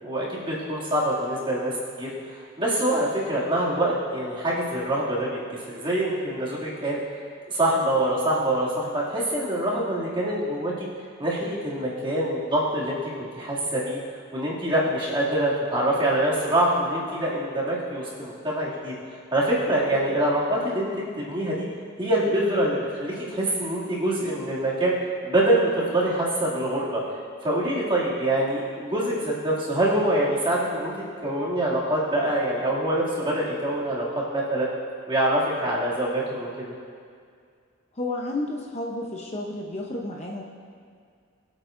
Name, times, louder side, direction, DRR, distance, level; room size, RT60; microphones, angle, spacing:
voice 1, 0.0-5.4 5.7-7.0 7.5-10.9 11.2-14.0 14.3-18.9 19.3-20.9 21.2-21.7 22.0-24.9 25.2-27.0 27.4-30.9 31.2-34.7 35.1-36.8, right 1 dB, 25° right, -7 dB, 2.5 m, -25 dB
voice 2, 38.0-40.4, left 2 dB, 30° left, -1 dB, 0.8 m, -31 dB
22.5 x 8.0 x 2.6 m, 2.2 s
head